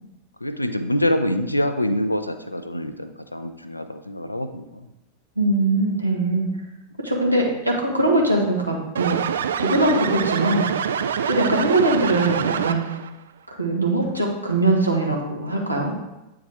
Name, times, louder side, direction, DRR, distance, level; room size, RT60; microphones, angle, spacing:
voice 1, 0.4-4.9 7.4-7.6, left 1 dB, 85° left, 9 dB, 0.5 m, -25 dB
voice 2, 5.4-6.5 7.0-9.2 9.6-10.6 11.3-12.8 13.5-15.9, right 2 dB, 85° right, -1 dB, 1.3 m, -21 dB
sound 1, 9.0-13.1, right 7 dB, 65° right, 0.3 m, -25 dB
8.8 x 4.7 x 3.5 m, 0.96 s
figure-of-eight pair, 90°, 0 cm